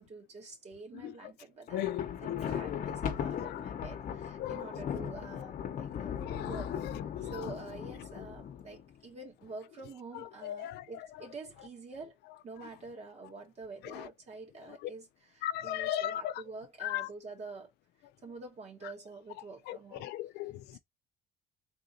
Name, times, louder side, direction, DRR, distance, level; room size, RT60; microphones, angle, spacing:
voice 1, 0.0-6.7 7.3-12.2 12.4-17.7 18.2-20.1, right 3 dB, 40° right, 1.6 m, -47 dB
voice 2, 1.7-2.8 3.3-3.7 4.4-4.6 6.2-7.5 10.1-10.9 13.8-14.1 15.4-16.4 16.8-17.1 19.7-20.8, left 13 dB, 75° left, 0.4 m, -37 dB
Thunder, 1.7-8.9, left 8 dB, 55° left, 0.9 m, -38 dB
3.7 x 2.6 x 3.9 m
cardioid pair, 110°, 17 cm